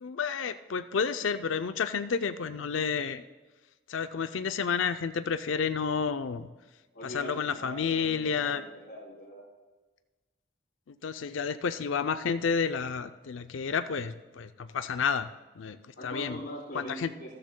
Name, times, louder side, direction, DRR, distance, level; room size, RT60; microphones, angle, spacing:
voice 1, 0.0-3.2 3.9-6.5 7.0-8.6 10.9-15.3 15.6-15.8 16.0-16.4 16.7-17.1, left 6 dB, 85° left, 10 dB, 0.5 m, -30 dB
voice 2, 6.9-9.4 16.0-17.3, equal, 65° left, -7 dB, 3.0 m, -42 dB
14.0 x 13.5 x 2.2 m, 1.3 s
head